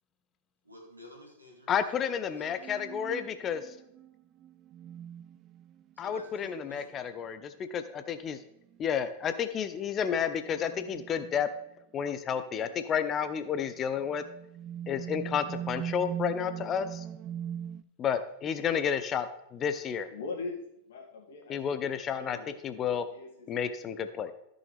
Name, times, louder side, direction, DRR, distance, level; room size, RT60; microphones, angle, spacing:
voice 1, 0.6-2.8 6.0-6.9 18.0-18.2, left 1 dB, 85° right, 2.4 m, -51 dB
voice 2, 1.7-3.8 6.0-8.4 8.8-11.5 11.9-14.2 14.9-17.0 18.0-20.1 21.5-22.4 22.6-23.0 23.5-24.3, left 8 dB, 25° left, 0.5 m, -31 dB
sound 1, 2.4-6.3 8.7-8.8 9.5-9.6 10.4-11.5 12.3-12.8 13.5-17.8, right 9 dB, 30° right, 0.4 m, -41 dB
voice 3, 20.1-20.6 20.9-23.7, left 3 dB, 60° left, 2.1 m, -42 dB
14.0 x 6.3 x 3.4 m
figure-of-eight pair, 90°, 0 cm